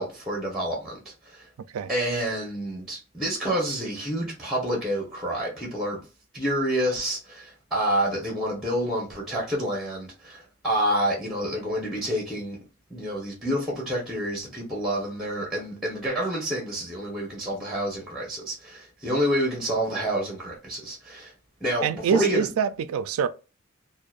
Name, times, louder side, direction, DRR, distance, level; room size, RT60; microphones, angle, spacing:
voice 1, 0.0-1.5 1.9-6.0 6.3-12.6 12.9-21.3 21.6-22.5, right 1 dB, ahead, 0.7 m, -28 dB
voice 2, 21.8-23.3, right 7 dB, 85° right, 0.3 m, -25 dB
2.7 x 2.0 x 2.3 m
head